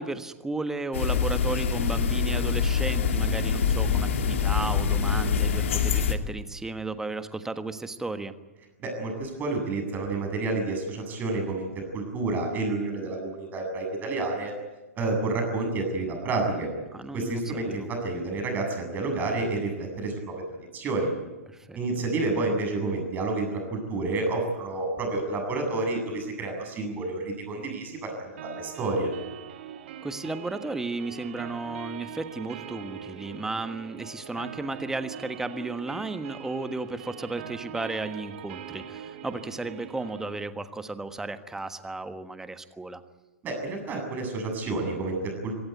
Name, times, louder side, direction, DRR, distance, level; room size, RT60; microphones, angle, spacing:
voice 1, 0.0-8.3 16.9-17.9 21.5-21.8 30.0-43.0, right 3 dB, 5° right, 10 dB, 1.4 m, -34 dB
sound 1, 0.9-6.1, left 6 dB, 60° left, 2.4 m, -25 dB
voice 2, 8.8-14.5 15.0-16.7 17.1-20.4 20.7-21.1 21.7-29.1 43.4-45.5, right 2 dB, 25° right, 2 dB, 7.8 m, -29 dB
sound 2, 28.4-40.4, right 9 dB, 50° right, 2.1 m, -42 dB
25.5 x 17.5 x 9.5 m, 1.1 s
figure-of-eight pair, 110°, 8 cm